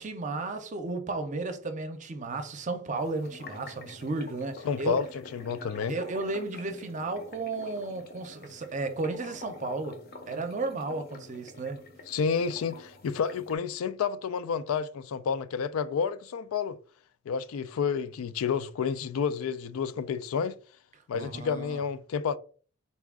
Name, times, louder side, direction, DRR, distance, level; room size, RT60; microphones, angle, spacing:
voice 1, 0.0-5.0 5.9-11.8 21.1-21.8, right 3 dB, 35° right, 0.6 m, -34 dB
sound 1, 3.0-13.6, left 2 dB, 45° left, 0.6 m, -48 dB
voice 2, 4.6-5.1 5.3-6.0 12.1-16.8 17.3-20.6 21.1-22.4, left 6 dB, 85° left, 0.3 m, -30 dB
4.1 x 2.3 x 3.5 m
head